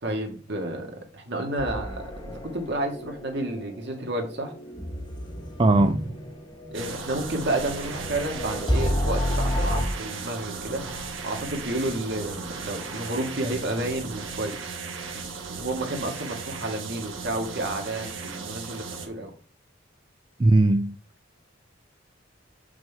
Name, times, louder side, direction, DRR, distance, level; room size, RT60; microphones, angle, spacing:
voice 1, 0.0-4.5 6.7-10.8 11.2-14.8 15.6-19.3, right 1 dB, 60° right, 1.8 m, -31 dB
sound 1, 1.6-9.9, equal, 25° left, 1.3 m, -31 dB
voice 2, 5.6-6.0 20.4-21.0, right 2 dB, 25° right, 0.4 m, -19 dB
sound 2, 6.7-19.1, right 4 dB, 80° right, 1.4 m, -36 dB
7.2 x 6.0 x 3.5 m
head